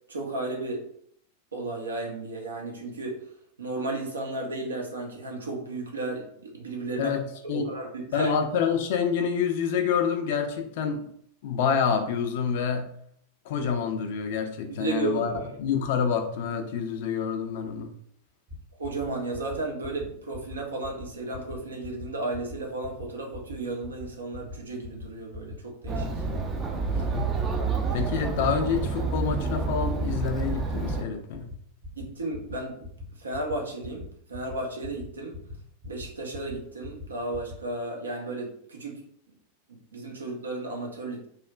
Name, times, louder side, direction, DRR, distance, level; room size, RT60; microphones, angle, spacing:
voice 1, 0.1-0.9 1.5-3.2 3.6-7.2 7.5-8.3 14.7-15.4 18.8-26.1 32.0-32.9 33.2-35.4 35.8-39.0 39.7-41.3, right 2 dB, 70° right, 0 dB, 0.6 m, -33 dB
voice 2, 7.0-7.7 8.1-11.1 11.4-12.9 13.4-17.9 26.9-27.5 27.9-31.5, left 6 dB, 50° left, 5 dB, 0.4 m, -28 dB
sound 1, 18.5-18.6 18.8-19.1 19.3-19.6 19.8-20.1 20.3-20.6 20.8-21.1 21.3-21.6 21.8-22.1 22.3-22.6 22.8-23.1 23.3-23.6 23.8-24.1 24.3-24.6 24.8-25.1 25.3-25.6 25.8-26.1 26.3-26.6 26.8-27.1 27.3-27.6 27.8-28.1 28.3-28.6 28.8-29.1 29.3-29.5 29.8-30.0 30.3-30.6 30.8-31.1 31.3-31.6 31.8-32.1 32.3-32.6 32.8-33.0 33.3-33.5 33.8-34.1 34.3-34.6 34.8-35.1 35.3-35.6 35.8-36.1 36.3-36.6 36.8-37.1 37.3-37.5, left 3 dB, 45° right, 1.0 m, -40 dB
Chatter, 25.9-31.0, right 4 dB, 25° right, 0.4 m, -29 dB
3.0 x 2.1 x 2.3 m, 0.66 s
figure-of-eight pair, 90°, 0 cm